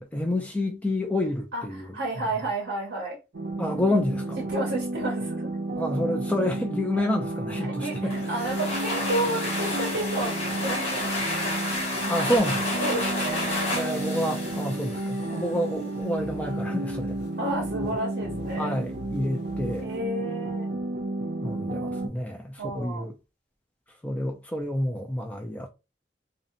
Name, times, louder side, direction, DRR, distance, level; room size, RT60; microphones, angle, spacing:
voice 1, 0.0-1.9 3.6-4.4 5.8-8.2 12.1-12.7 13.7-17.2 17.8-18.0 18.6-19.9 21.4-23.1 24.0-25.7, left 1 dB, 10° left, 0.3 m, -29 dB
voice 2, 1.5-3.2 4.4-5.5 7.6-11.1 12.8-13.5 15.2-15.6 17.4-18.8 19.8-20.7 22.6-23.1, right 2 dB, 85° right, 0.8 m, -31 dB
sound 1, 3.3-22.1, right 2 dB, 65° right, 0.5 m, -32 dB
sound 2, 8.1-15.6, left 2 dB, 35° left, 1.0 m, -31 dB
sound 3, 16.1-20.0, left 2 dB, 70° left, 0.5 m, -43 dB
2.7 x 2.0 x 2.6 m
head